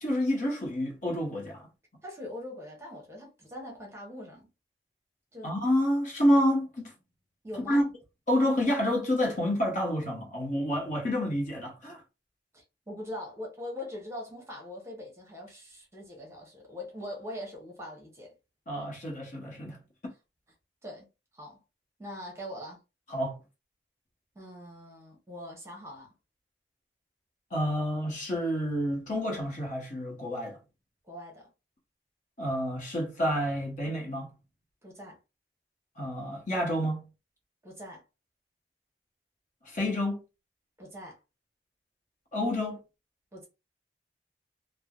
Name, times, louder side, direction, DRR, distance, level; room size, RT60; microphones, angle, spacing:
voice 1, 0.0-1.7 5.4-6.9 7.7-7.8 8.3-12.0 18.7-19.8 23.1-23.4 27.5-30.6 32.4-34.4 36.0-37.1 39.6-40.2 42.3-42.8, equal, 45° left, 0.9 m, -28 dB
voice 2, 2.0-4.5 5.3-5.5 7.4-7.9 12.5-18.3 20.8-21.1 21.3-21.6 22.0-22.8 24.3-26.1 31.1-31.5 34.8-35.2 37.6-38.0 40.8-41.2 43.3-43.5, left 1 dB, 15° right, 0.9 m, -42 dB
3.2 x 2.1 x 2.4 m
head